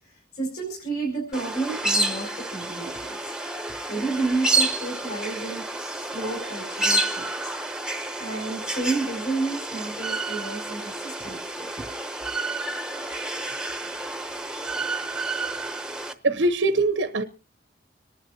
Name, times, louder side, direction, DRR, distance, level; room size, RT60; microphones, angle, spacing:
voice 1, 0.0-3.3 3.9-7.5 8.2-11.7, right 3 dB, 50° left, 5.0 m, -31 dB
sound 1, 1.3-16.1, right 2 dB, 5° right, 0.8 m, -29 dB
voice 2, 16.2-17.2, right 2 dB, 80° right, 0.9 m, -22 dB
26.0 x 11.0 x 2.8 m
head